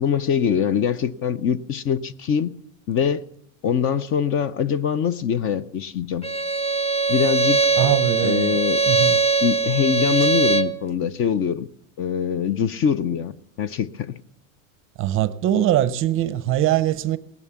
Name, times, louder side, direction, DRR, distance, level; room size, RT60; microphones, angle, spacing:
voice 1, 0.0-2.5 2.9-3.2 3.6-6.3 7.1-7.6 8.2-8.8 9.4-11.7 12.0-13.3 13.6-14.1, left 7 dB, 35° left, 0.5 m, -23 dB
Bowed string instrument, 6.2-10.8, right 4 dB, 15° left, 1.0 m, -21 dB
voice 2, 7.8-8.6 8.9-9.2 15.0-17.2, right 12 dB, 35° right, 0.6 m, -22 dB
18.5 x 11.0 x 7.0 m
supercardioid pair, 145°, 39 cm